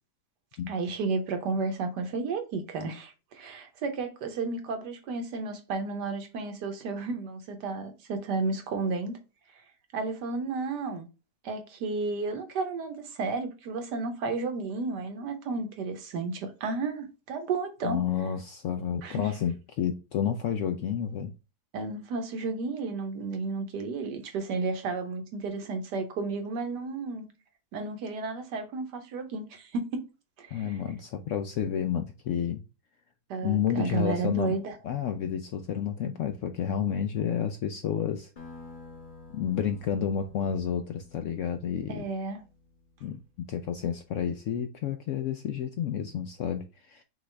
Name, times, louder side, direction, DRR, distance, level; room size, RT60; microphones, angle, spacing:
voice 1, 0.7-9.2 9.9-11.1 11.4-18.0 19.0-19.3 21.7-27.3 27.7-30.0 30.4-30.7 33.3-34.7 41.9-42.4, right 4 dB, 85° right, 1.5 m, -32 dB
voice 2, 17.8-21.3 30.5-32.6 33.4-34.6 34.8-38.3 39.3-42.1 43.0-47.0, left 8 dB, 70° left, 0.7 m, -30 dB
sound 1, 38.4-43.5, left 3 dB, 30° left, 1.3 m, -50 dB
6.0 x 2.5 x 3.2 m
omnidirectional pair, 1.7 m